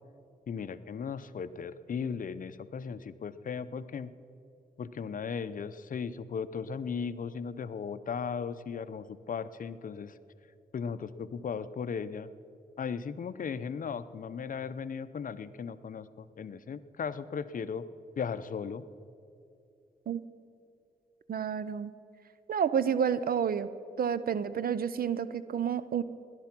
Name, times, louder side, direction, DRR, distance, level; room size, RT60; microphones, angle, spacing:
voice 1, 0.5-4.1 4.8-10.1 10.7-12.3 12.8-17.9 18.2-18.8, left 6 dB, 60° left, 14 dB, 0.7 m, -37 dB
voice 2, 21.3-21.9 22.5-23.7 24.0-26.0, right 7 dB, 70° right, 15 dB, 0.7 m, -29 dB
17.5 x 11.5 x 6.1 m, 2.6 s
cardioid pair, 70°, 16 cm